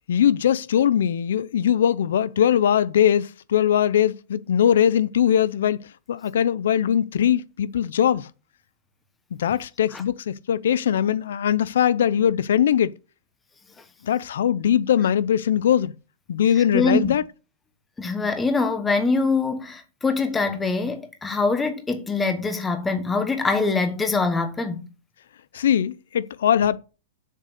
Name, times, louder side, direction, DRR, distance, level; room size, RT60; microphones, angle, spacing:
voice 1, 0.1-8.3 9.4-12.9 14.0-15.9 16.3-17.2 25.5-26.8, left 9 dB, 85° left, 0.5 m, -21 dB
voice 2, 16.7-17.1 18.0-24.8, left 3 dB, 10° left, 1.1 m, -24 dB
7.4 x 6.5 x 6.6 m
supercardioid pair, 175°, 0 cm